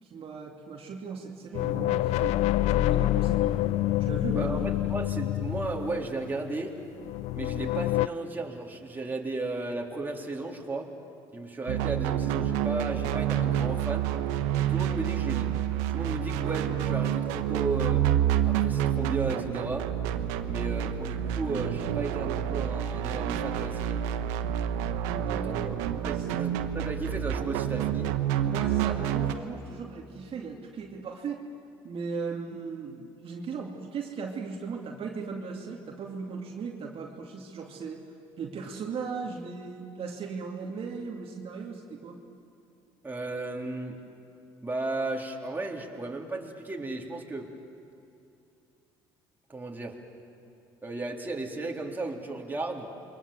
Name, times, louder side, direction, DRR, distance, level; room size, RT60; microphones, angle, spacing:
voice 1, 0.0-2.4 2.8-3.6 4.0-4.7 25.1-25.7 26.2-26.4 28.4-31.4 31.8-38.0 38.4-42.2, right 5 dB, 50° right, 0 dB, 2.5 m, -37 dB
sound 1, 1.5-6.5 7.0-8.1, left 15 dB, 70° left, 0.5 m, -27 dB
voice 2, 4.3-6.8 7.3-10.9 11.3-14.1 14.7-15.5 15.9-18.1 18.4-19.9 20.4-24.0 25.6-28.1 43.0-44.0 44.6-47.5 49.5-50.0 50.8-52.9, right 2 dB, 15° right, -1 dB, 3.7 m, -34 dB
sound 2, 11.7-29.3, right 10 dB, 80° right, 1.2 m, -28 dB
28.5 x 23.0 x 7.5 m, 2.6 s
hypercardioid pair, 65°, 12 cm